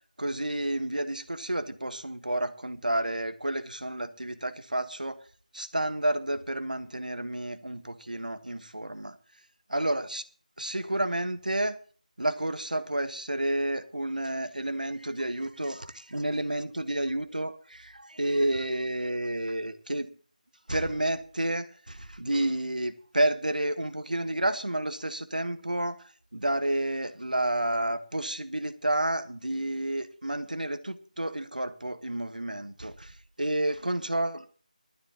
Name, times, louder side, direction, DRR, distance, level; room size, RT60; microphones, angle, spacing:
voice 1, 0.2-5.2 5.5-9.1 9.7-10.2 10.6-11.8 12.2-20.1 20.7-34.5, right 1 dB, 70° right, 11 dB, 1.3 m, -30 dB
18.5 x 12.5 x 2.9 m, 0.42 s
figure-of-eight pair, 165°, 5 cm